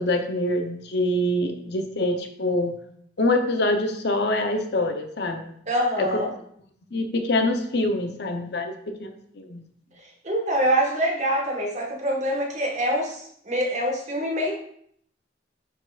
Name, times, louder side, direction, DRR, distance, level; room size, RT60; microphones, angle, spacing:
voice 1, 0.0-2.7 3.2-5.5 6.0-6.1 6.9-9.6, left 1 dB, 60° left, 6 dB, 0.7 m, -25 dB
voice 2, 5.7-6.3 10.0-14.5, equal, 40° right, -1 dB, 1.4 m, -25 dB
9.8 x 4.5 x 2.4 m, 0.65 s
head